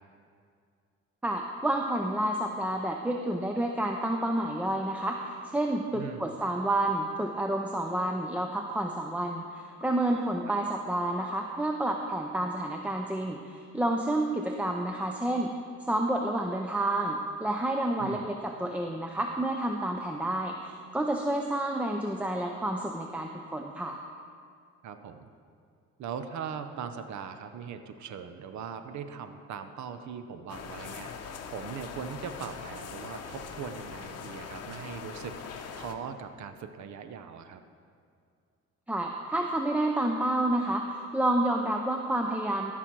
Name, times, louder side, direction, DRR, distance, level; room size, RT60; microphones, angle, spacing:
voice 1, 1.2-15.6 15.9-24.0 38.9-42.7, right 1 dB, 5° right, 3 dB, 0.5 m, -29 dB
voice 2, 5.9-6.3 10.5-10.6 18.0-18.3 24.8-25.3 26.0-37.6, right 7 dB, 70° right, 9 dB, 0.8 m, -40 dB
sound 1, 30.5-36.0, left 6 dB, 55° left, 0.8 m, -42 dB
14.0 x 6.1 x 4.6 m, 2.3 s
cardioid pair, 90°, 30 cm